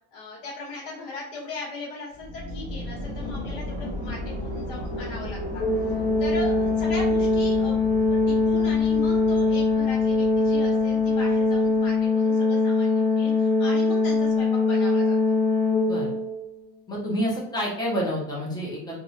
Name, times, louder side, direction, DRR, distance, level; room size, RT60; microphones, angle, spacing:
voice 1, 0.1-5.6 6.2-7.7 8.0-15.4, left 3 dB, 65° left, -7 dB, 1.2 m, -38 dB
sound 1, 2.1-12.1, left 1 dB, 10° right, 1.2 m, -35 dB
Organ, 5.6-16.5, left 3 dB, 45° left, 0.9 m, -22 dB
voice 2, 15.8-16.2 16.9-19.0, equal, 10° left, -6 dB, 1.2 m, -28 dB
2.9 x 2.6 x 2.7 m, 0.82 s
supercardioid pair, 115°, 43 cm